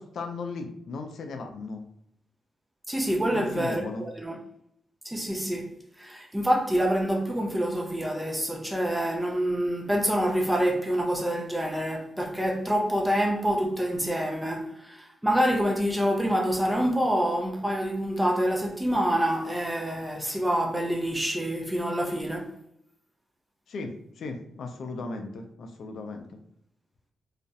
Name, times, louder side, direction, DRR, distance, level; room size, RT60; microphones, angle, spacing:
voice 1, 0.0-1.8 3.3-4.1 23.7-26.3, left 3 dB, 70° left, 0.4 m, -36 dB
voice 2, 2.9-3.9 4.2-4.4 5.0-5.7 6.0-22.5, equal, 10° right, 0.4 m, -26 dB
2.3 x 2.0 x 2.7 m
cardioid pair, 70°, 0 cm